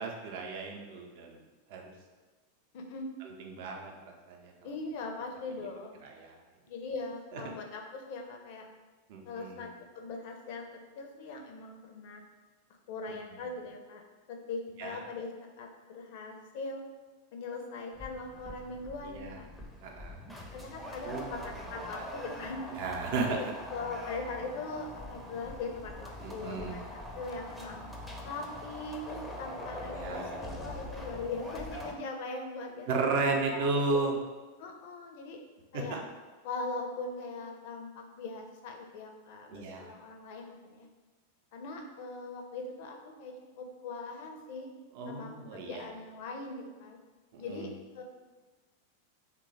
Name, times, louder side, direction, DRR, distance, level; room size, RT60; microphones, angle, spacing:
voice 1, 0.0-1.3 1.7-1.8 3.5-3.9 4.3-4.4 6.2-6.3 9.1-9.6 14.8-15.0 19.1-19.3 19.8-20.2 21.0-21.3 22.8-23.3 26.2-26.8 29.9-30.3 32.9-34.1 35.9-36.0 39.5-39.9 45.0-45.8 47.5-47.7, right 3 dB, 50° right, 2 dB, 0.5 m, -33 dB
voice 2, 2.7-3.1 4.6-6.0 6.7-8.7 9.2-12.2 12.9-14.0 14.3-15.3 15.6-16.8 17.3-19.5 20.5-27.8 28.2-32.9 33.5-34.0 34.6-35.4 35.7-36.0 36.4-40.9 41.5-44.7 45.1-47.0 47.4-48.0, left 3 dB, 50° left, 3 dB, 0.5 m, -41 dB
sound 1, 18.0-31.9, left 1 dB, ahead, 0.5 m, -43 dB
3.0 x 2.3 x 4.0 m, 1.3 s
figure-of-eight pair, 90°, 0 cm